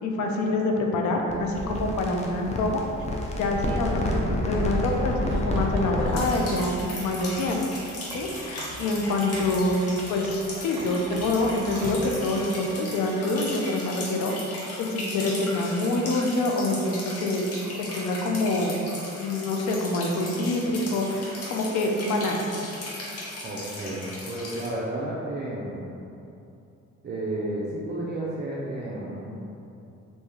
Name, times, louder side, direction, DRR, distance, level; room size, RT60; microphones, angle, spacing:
voice 1, 0.0-2.8 3.4-7.6 8.1-14.3 14.8-17.5 17.8-18.8 19.2-22.4, left 2 dB, 75° left, 1 dB, 0.5 m, -26 dB
sound 1, 1.3-6.4, left 1 dB, 25° left, 0.5 m, -28 dB
Writing, 5.0-7.7 8.1-10.5 10.8-12.2, right 3 dB, 85° right, 0.5 m, -42 dB
sound 2, 6.1-24.7, left 1 dB, 55° left, 0.9 m, -37 dB
voice 2, 23.4-25.9 27.0-29.4, right 1 dB, 35° right, -6 dB, 0.5 m, -32 dB
3.0 x 2.7 x 3.5 m, 2.7 s
cardioid pair, 90°, 30 cm